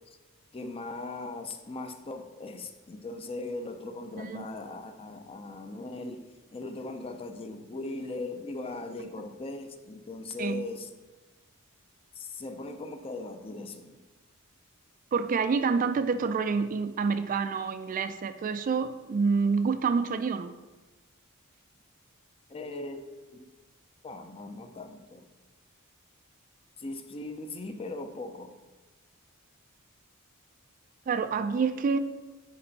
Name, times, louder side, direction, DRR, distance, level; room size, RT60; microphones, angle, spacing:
voice 1, 0.5-10.9 12.1-14.0 22.5-23.0 23.3-23.4 24.0-25.3 26.8-28.6, left 2 dB, 25° left, 0.5 m, -39 dB
voice 2, 15.1-20.5 31.1-32.0, right 5 dB, 40° right, 0.3 m, -27 dB
9.7 x 3.3 x 4.0 m
head